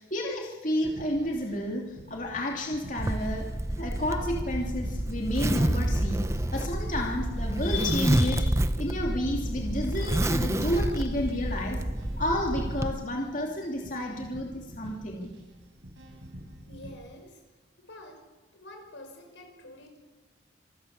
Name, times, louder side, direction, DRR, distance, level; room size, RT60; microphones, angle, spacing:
voice 1, 0.0-3.5 3.8-11.8 12.2-15.3, left 1 dB, 45° left, 0 dB, 2.8 m, -31 dB
sound 1, 0.7-16.9, equal, 80° right, 6.2 m, -47 dB
Zipper (clothing), 3.0-12.9, right 1 dB, 15° right, 0.6 m, -28 dB
voice 2, 16.7-17.4 17.8-18.2 18.5-20.0, left 1 dB, 90° left, 4 dB, 5.6 m, -47 dB
27.0 x 14.5 x 7.1 m, 1.2 s
head